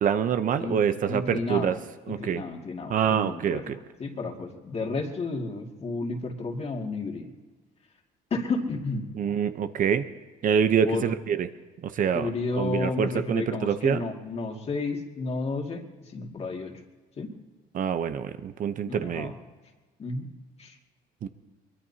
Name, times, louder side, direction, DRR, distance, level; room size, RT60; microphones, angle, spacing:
voice 1, 0.0-1.8 2.1-2.4 2.9-3.8 9.1-10.0 10.4-11.5 11.8-12.3 12.6-14.0 17.7-19.3 21.2-21.3, right 8 dB, 50° right, 10 dB, 0.8 m, -26 dB
voice 2, 0.6-1.8 2.1-7.3 8.3-9.1 10.8-11.1 12.1-16.7 17.2-17.3 18.8-19.3 20.0-20.3 20.6-20.8, left 3 dB, 40° left, 2 dB, 2.3 m, -32 dB
23.0 x 22.0 x 2.8 m, 1.3 s
cardioid pair, 110°, 17 cm